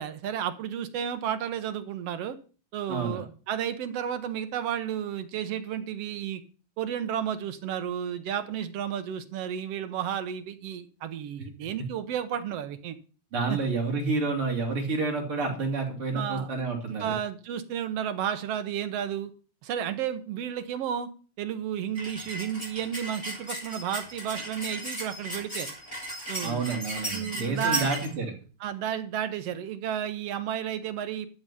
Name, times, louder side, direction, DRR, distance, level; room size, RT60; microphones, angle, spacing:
voice 1, 0.0-2.4 2.7-6.4 6.8-13.0 13.5-13.6 16.1-16.5 17.0-19.3 19.6-21.1 21.4-25.7 26.3-26.6 27.1-27.9 28.6-31.3, right 9 dB, 65° right, 9 dB, 1.9 m, -32 dB
voice 2, 2.9-3.2 13.3-17.1 26.4-28.3, right 3 dB, 50° right, 0 dB, 3.7 m, -29 dB
sound 1, 21.9-28.1, right 1 dB, 10° left, 4.8 m, -36 dB
12.5 x 7.9 x 5.7 m, 0.38 s
omnidirectional pair, 3.3 m